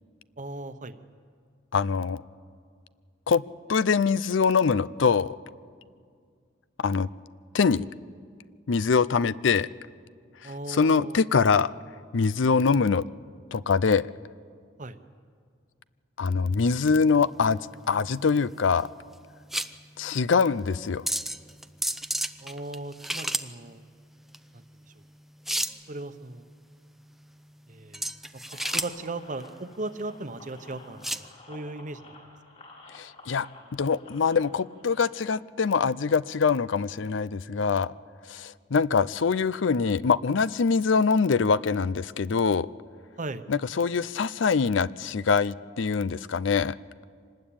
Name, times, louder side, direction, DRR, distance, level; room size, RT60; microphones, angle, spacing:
voice 1, 0.4-1.0 10.4-11.3 14.8-15.0 22.4-23.8 24.5-24.6 25.9-26.5 27.7-28.0 28.7-32.1 43.2-43.4, right 2 dB, 40° right, 10 dB, 1.0 m, -37 dB
voice 2, 1.7-2.2 3.3-3.4 3.7-5.4 6.8-7.1 7.5-7.9 8.7-9.7 10.4-11.7 12.1-13.1 13.5-14.1 16.2-18.9 20.0-21.0 32.9-33.5 33.7-37.9 38.3-42.7 43.5-46.8, left 5 dB, 70° left, 18 dB, 0.5 m, -24 dB
sound 1, 16.6-31.3, right 1 dB, ahead, 0.7 m, -34 dB
sound 2, 28.4-35.3, left 3 dB, 40° left, 5.0 m, -51 dB
25.5 x 19.5 x 8.8 m, 2.1 s
head